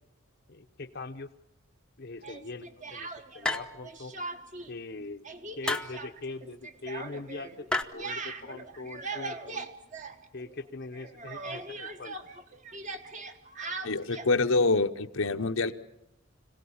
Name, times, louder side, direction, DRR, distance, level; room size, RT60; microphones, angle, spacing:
voice 1, 0.5-1.3 2.0-3.1 3.3-4.1 4.7-5.3 5.6-9.7 10.3-12.1, left 3 dB, 50° left, 6 dB, 0.8 m, -41 dB
Speech, 2.2-3.5 3.8-4.7 5.0-10.7 10.9-14.3, right 3 dB, 35° right, 1.3 m, -40 dB
sound 1, 3.4-4.0 5.7-6.0 7.7-7.8, left 2 dB, 5° left, 0.8 m, -30 dB
voice 2, 13.8-15.7, left 3 dB, 75° left, 7 dB, 1.0 m, -26 dB
26.0 x 17.5 x 8.6 m, 0.84 s
head